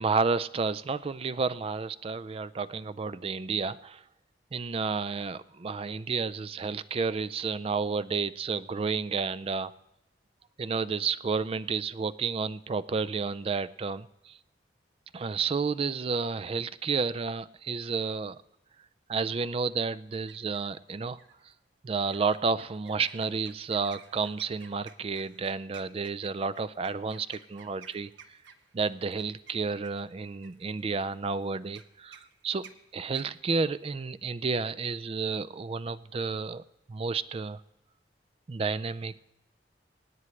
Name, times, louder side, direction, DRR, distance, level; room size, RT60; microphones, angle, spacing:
voice 1, 0.0-4.0 4.5-9.7 10.6-14.4 15.1-18.4 19.1-21.2 21.8-28.1 28.7-36.6 36.9-37.6 38.5-39.2, right 4 dB, 30° right, 15 dB, 0.4 m, -31 dB
sound 1, 20.1-20.8 21.2-21.5 22.1-34.0, right 6 dB, 90° right, 1.0 m, -55 dB
24.5 x 9.6 x 3.2 m, 0.91 s
head